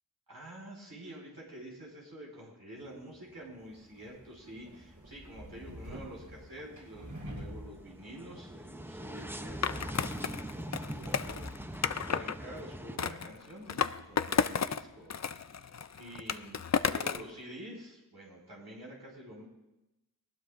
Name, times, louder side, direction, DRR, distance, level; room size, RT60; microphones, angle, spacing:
voice 1, 0.3-19.5, right 1 dB, 75° right, -3 dB, 4.9 m, -48 dB
sound 1, 2.8-3.5 3.8-13.0, right 1 dB, 5° right, 0.7 m, -44 dB
sound 2, 3.6-14.7, equal, 55° right, 6.8 m, -49 dB
Skateboard, 9.6-12.4 13.0-14.8 15.1-17.3, left 6 dB, 45° left, 0.5 m, -32 dB
20.0 x 19.0 x 2.6 m, 0.96 s
wide cardioid pair, 60°, 38 cm